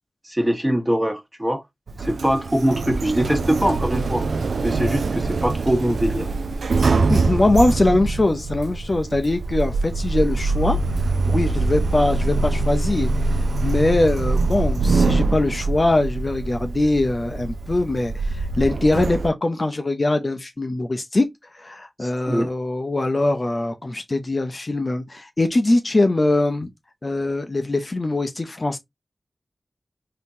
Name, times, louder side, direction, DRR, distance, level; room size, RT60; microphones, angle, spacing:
voice 1, 0.2-1.6 2.0-4.3 4.6-6.3 22.0-22.5, right 1 dB, 15° right, 1.1 m, -22 dB
Sliding door, 1.9-19.3, right 3 dB, 85° right, 0.3 m, -23 dB
voice 2, 7.1-10.8 11.3-13.1 13.6-21.3 21.5-26.7 27.0-28.8, left 2 dB, 45° left, 0.5 m, -22 dB
3.5 x 2.8 x 2.7 m
cardioid pair, 45°, 0 cm